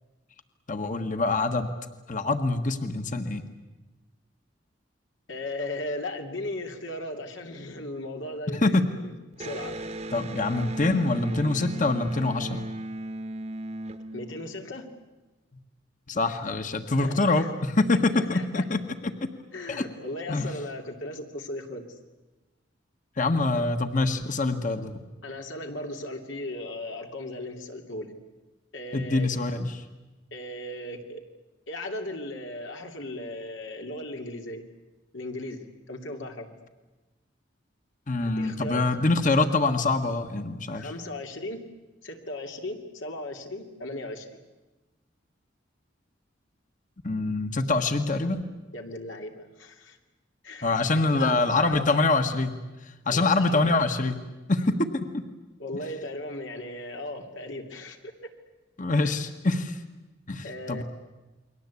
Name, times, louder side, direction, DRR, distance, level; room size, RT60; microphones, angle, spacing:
voice 1, 0.7-1.7 2.1-3.4 8.6-8.8 10.1-12.6 16.1-18.8 19.7-19.8 20.3-20.5 23.2-25.0 28.9-29.8 38.1-40.9 47.0-48.4 50.6-52.5 53.0-54.2 54.5-54.8 55.1-55.2 58.8-59.8 60.3-60.8, left 3 dB, 45° left, 7 dB, 1.5 m, -25 dB
voice 2, 5.3-9.1 9.4-9.7 14.1-14.9 17.0-17.5 18.1-18.6 19.5-22.0 23.5-23.6 25.2-28.1 28.7-29.3 30.3-31.2 31.7-34.6 35.1-36.5 38.2-38.9 40.7-41.7 42.0-44.4 48.7-50.0 50.4-50.7 51.0-52.1 53.1-53.8 55.6-58.1 59.0-59.1 60.4-60.8, left 1 dB, 85° left, 3 dB, 2.9 m, -37 dB
Electric guitar, 9.4-14.9, right 1 dB, 35° right, 1.1 m, -36 dB
29.5 x 22.5 x 8.5 m, 1.1 s
head